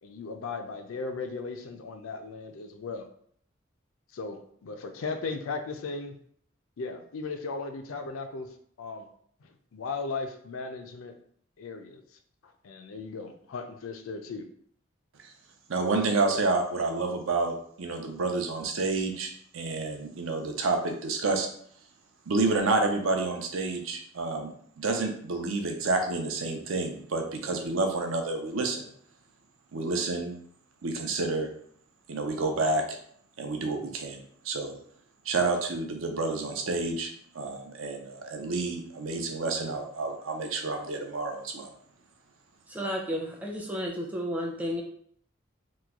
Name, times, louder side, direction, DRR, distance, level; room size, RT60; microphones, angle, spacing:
voice 1, 0.0-3.1 4.1-6.2 6.8-8.5 8.8-9.1 9.4-11.1 11.6-12.0 12.4-14.5, left 4 dB, 85° left, 7 dB, 0.4 m, -37 dB
voice 2, 15.7-21.5 22.3-28.9 29.7-30.3 30.8-31.5 32.1-33.0 33.4-34.8 35.2-37.1 37.3-41.7, right 3 dB, 80° right, 4 dB, 0.6 m, -29 dB
voice 3, 42.7-44.8, equal, 5° right, -1 dB, 0.5 m, -32 dB
3.0 x 2.3 x 3.5 m, 0.63 s
head